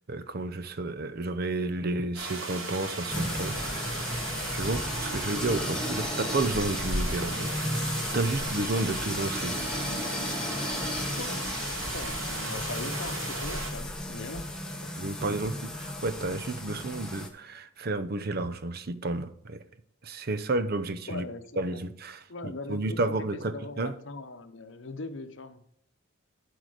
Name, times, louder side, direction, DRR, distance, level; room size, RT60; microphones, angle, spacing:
voice 1, 0.0-3.8 4.5-7.7 8.1-9.6 15.0-19.6 20.0-21.3 21.6-23.9, right 2 dB, 50° right, 0.6 m, -31 dB
sound 1, 2.1-13.7, right 2 dB, 75° right, 2.8 m, -37 dB
sound 2, 3.1-17.3, left 1 dB, 5° left, 1.2 m, -34 dB
sound 3, 6.6-12.2, left 1 dB, 25° right, 2.3 m, -54 dB
voice 2, 11.2-11.5 11.9-14.5 21.1-21.9 22.3-23.1 23.5-25.6, left 2 dB, 65° left, 0.8 m, -40 dB
11.5 x 4.8 x 5.0 m
head